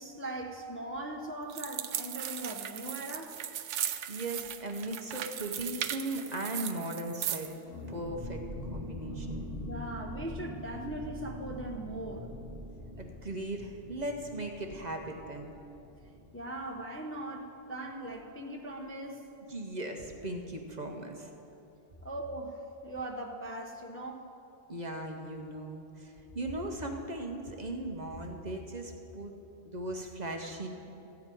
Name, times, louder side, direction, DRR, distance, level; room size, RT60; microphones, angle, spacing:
voice 1, 0.0-3.4 9.7-12.3 16.3-19.3 22.0-24.3, right 1 dB, 15° left, 0 dB, 0.6 m, -40 dB
sound 1, 1.5-7.5, right 10 dB, 90° right, 0.9 m, -37 dB
voice 2, 4.1-7.5 7.9-8.4 8.7-9.5 13.0-15.5 19.5-21.3 24.7-29.3 29.7-30.7, right 1 dB, 40° right, 3 dB, 0.9 m, -38 dB
sound 2, 7.7-17.1 17.3-17.4 17.8-18.1, left 1 dB, 75° left, 2.2 m, -43 dB
14.5 x 4.9 x 9.0 m, 3.0 s
omnidirectional pair, 1.2 m